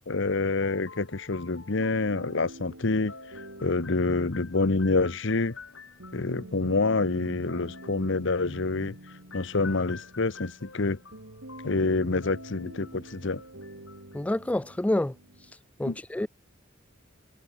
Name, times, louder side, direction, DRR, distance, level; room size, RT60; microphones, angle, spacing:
voice 1, 0.1-3.1 3.6-5.5 6.1-9.0 9.3-11.0 11.6-13.4 15.8-16.0, left 3 dB, 65° left, 1.0 m, -27 dB
sound 1, 0.6-6.5 7.5-14.4, left 5 dB, 85° left, 4.9 m, -49 dB
sound 2, 1.8-15.5, right 1 dB, 90° right, 4.0 m, -47 dB
voice 2, 14.1-15.1 15.8-16.3, left 1 dB, 5° left, 0.3 m, -27 dB
head